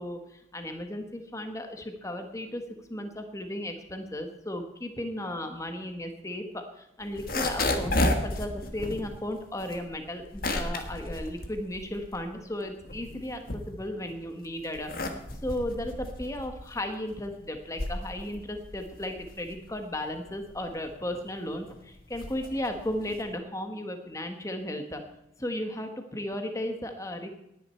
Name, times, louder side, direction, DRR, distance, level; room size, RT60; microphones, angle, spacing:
voice 1, 0.0-15.1 15.4-25.0 25.4-27.3, left 1 dB, 15° left, 5 dB, 1.2 m, -35 dB
sound 1, 7.0-12.3 12.7-14.1 14.6-23.4, left 1 dB, 50° left, 1.6 m, -33 dB
18.5 x 10.5 x 4.4 m, 0.86 s
head